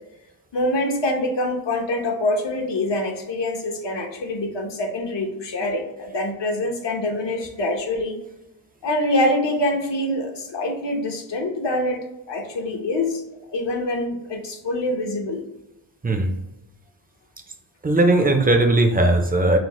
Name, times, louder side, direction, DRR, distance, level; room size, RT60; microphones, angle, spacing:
voice 1, 0.5-8.2 8.8-12.0 12.3-13.2 13.5-15.4, left 1 dB, 65° left, 2 dB, 1.0 m, -25 dB
voice 2, 17.8-19.6, right 2 dB, 20° right, 4 dB, 0.5 m, -18 dB
6.1 x 2.1 x 3.0 m, 0.96 s
wide cardioid pair, 115°, 45 cm